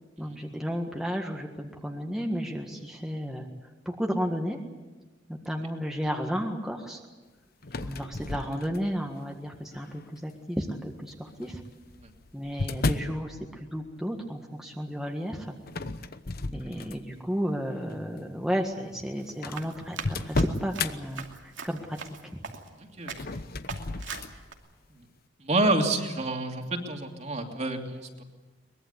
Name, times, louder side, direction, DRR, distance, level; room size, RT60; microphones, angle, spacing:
voice 1, 0.2-3.5 3.8-4.6 5.3-7.0 7.8-11.6 12.3-15.6 16.5-22.0 22.2-22.4, equal, 5° right, 1 dB, 1.7 m, -33 dB
sound 1, 7.6-9.1 9.7-10.2 11.3-13.2 15.7-17.2 17.7-17.9 18.7-18.8 19.0-19.1 19.4-20.9 23.1-24.4, left 2 dB, 55° left, 1.0 m, -33 dB
Run, 19.2-22.8 23.1-23.4 23.7-24.5, right 5 dB, 85° right, 2.6 m, -41 dB
voice 2, 25.4-28.2, right 2 dB, 40° right, 3 dB, 2.8 m, -28 dB
23.0 x 21.0 x 8.2 m, 1.2 s
head